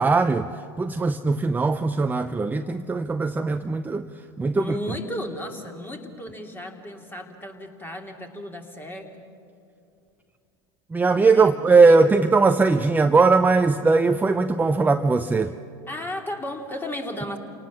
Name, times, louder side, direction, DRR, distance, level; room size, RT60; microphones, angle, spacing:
voice 1, 0.0-4.1 4.4-4.8 10.9-15.5, right 4 dB, 15° right, 8 dB, 0.7 m, -20 dB
voice 2, 4.6-9.1 11.3-12.0 15.9-17.4, left 1 dB, 15° left, 3 dB, 3.0 m, -34 dB
28.5 x 18.5 x 7.3 m, 2.5 s
hypercardioid pair, 90°, 13 cm